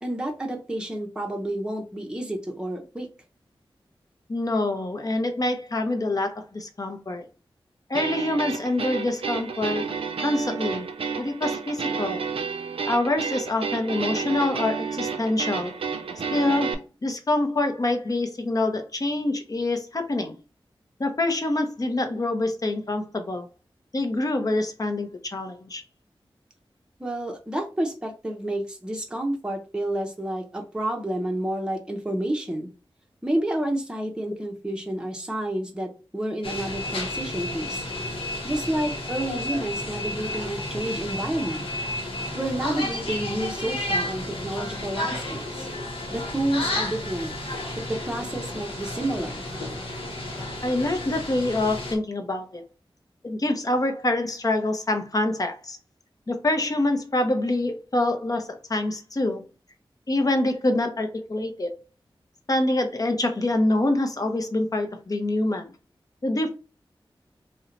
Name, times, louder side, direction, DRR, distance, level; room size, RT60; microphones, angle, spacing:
voice 1, 0.0-3.1 27.0-32.7 33.2-37.9 38.4-41.7 42.3-45.7 46.1-47.3 47.9-49.4, right 1 dB, 10° right, 0.6 m, -30 dB
voice 2, 4.3-7.2 7.9-9.9 10.2-10.9 11.2-12.2 12.9-15.7 16.3-20.4 21.0-23.5 23.9-25.8 50.6-52.6 53.2-55.8 56.3-59.4 60.1-61.7 62.5-65.7 66.2-66.5, left 2 dB, 40° left, 0.7 m, -26 dB
sound 1, 7.9-16.7, right 5 dB, 85° right, 0.4 m, -30 dB
sound 2, 36.4-51.9, left 1 dB, 75° left, 0.9 m, -32 dB
2.7 x 2.1 x 3.8 m
wide cardioid pair, 60°, 9 cm